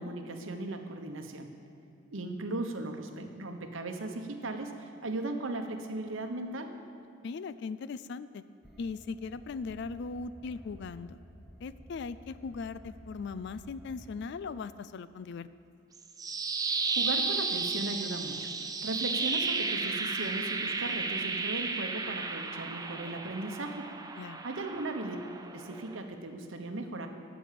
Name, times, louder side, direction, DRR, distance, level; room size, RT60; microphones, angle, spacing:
voice 1, 0.0-1.5 2.1-6.7 16.9-18.5 18.8-23.8 24.4-25.2 25.5-27.1, right 2 dB, 70° right, 5 dB, 1.0 m, -37 dB
voice 2, 7.2-8.4 8.8-11.2 11.6-15.5 24.2-24.4, left 4 dB, 55° left, 15 dB, 0.3 m, -39 dB
sound 1, 8.6-14.2, equal, ahead, 0.9 m, -53 dB
sound 2, 15.9-26.0, right 4 dB, 20° right, 0.5 m, -33 dB
12.0 x 6.1 x 7.6 m, 2.5 s
head